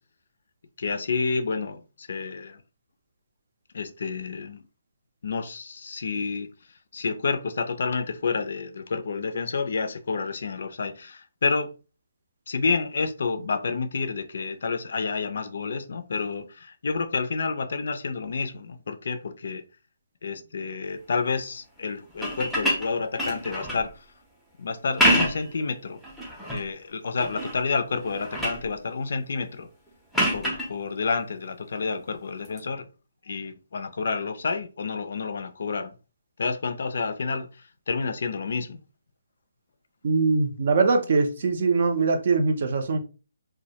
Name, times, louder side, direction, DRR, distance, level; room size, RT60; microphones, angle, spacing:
voice 1, 0.8-2.6 3.7-4.6 5.2-6.5 6.9-11.7 12.5-19.6 20.2-23.9 24.6-26.0 26.5-29.7 30.3-32.9 33.3-35.9 36.4-37.5 37.9-38.8, left 4 dB, 60° left, 0.4 m, -29 dB
sound 1, 22.1-23.9 24.8-25.5 26.0-26.7 27.2-27.6 28.0-28.7 30.1-30.7 32.4-32.6, equal, ahead, 0.5 m, -26 dB
voice 2, 40.0-43.0, right 4 dB, 50° right, 0.5 m, -22 dB
2.2 x 2.0 x 2.7 m
hypercardioid pair, 155°, 0 cm